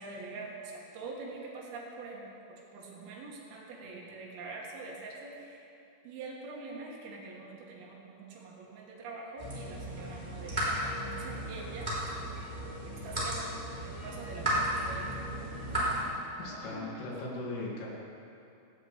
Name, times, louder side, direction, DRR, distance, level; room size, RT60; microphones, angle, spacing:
voice 1, 0.0-5.6 6.0-11.9 12.9-13.6 13.8-15.2 15.8-16.2 16.5-17.0, right 3 dB, 90° right, -2 dB, 4.7 m, -45 dB
sound 1, 9.4-16.0, right 1 dB, 10° right, 3.7 m, -34 dB
voice 2, 16.4-17.9, left 2 dB, 75° left, -4 dB, 5.0 m, -38 dB
18.0 x 16.0 x 3.5 m, 2.8 s
omnidirectional pair, 5.8 m